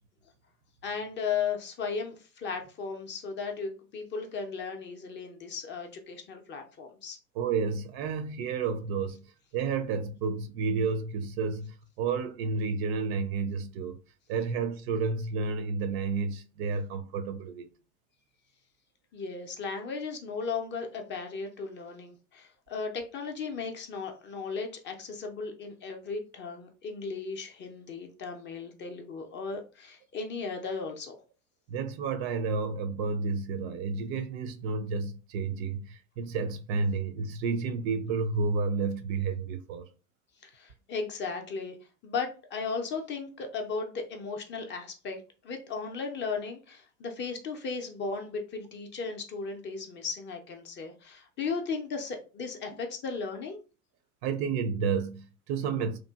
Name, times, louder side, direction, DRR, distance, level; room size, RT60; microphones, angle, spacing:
voice 1, 0.8-7.2 19.1-31.2 40.4-41.8 42.0-53.6, left 5 dB, 25° left, 0.4 m, -36 dB
voice 2, 7.4-9.2 9.5-14.0 14.3-17.7 31.7-39.8 54.2-56.0, right 4 dB, 45° right, 0.4 m, -31 dB
2.9 x 2.4 x 2.2 m
hypercardioid pair, 80°, 45 cm